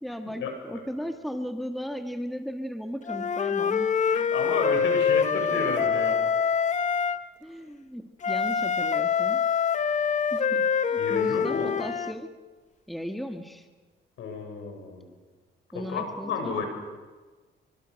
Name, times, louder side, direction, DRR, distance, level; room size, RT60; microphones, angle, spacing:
voice 1, 0.0-4.0 7.4-9.5 10.3-12.3 12.9-13.7 15.7-16.6, equal, ahead, 5 dB, 1.8 m, -36 dB
Wind instrument woodwind instrument, 3.1-7.2 8.2-12.1, left 6 dB, 40° left, 1.0 m, -25 dB
voice 2, 4.1-6.2 11.0-11.7 14.2-15.1 15.7-16.7, left 4 dB, 75° left, 4 dB, 6.7 m, -32 dB
26.0 x 24.0 x 6.5 m, 1.3 s
cardioid pair, 90°, 20 cm